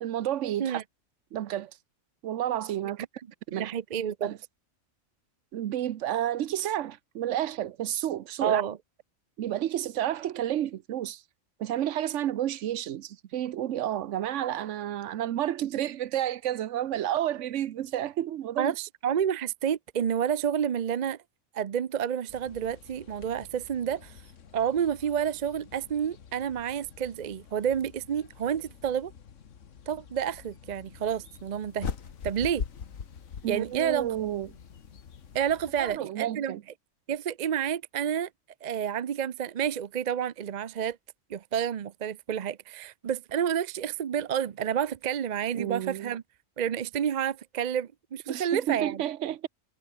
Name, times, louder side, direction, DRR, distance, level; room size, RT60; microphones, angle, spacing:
voice 1, 0.0-0.8 1.3-1.7 2.2-3.1 3.5-3.7 4.2-4.4 5.5-8.6 9.4-11.2 11.6-18.7 33.4-34.5 35.8-36.6 45.5-46.1 48.3-49.5, right 12 dB, 70° right, 1.0 m, -31 dB
voice 2, 3.5-4.3 8.4-8.8 18.6-21.2 21.5-24.2 24.5-29.1 29.9-31.9 32.2-32.6 33.5-34.1 35.3-36.5 37.1-38.3 38.6-41.0 41.3-46.2 46.6-49.0, right 8 dB, 50° right, 0.5 m, -29 dB
sound 1, 22.3-36.0, left 7 dB, 70° left, 1.6 m, -52 dB
sound 2, 31.8-34.2, left 7 dB, 85° left, 1.9 m, -36 dB
omnidirectional pair, 1.4 m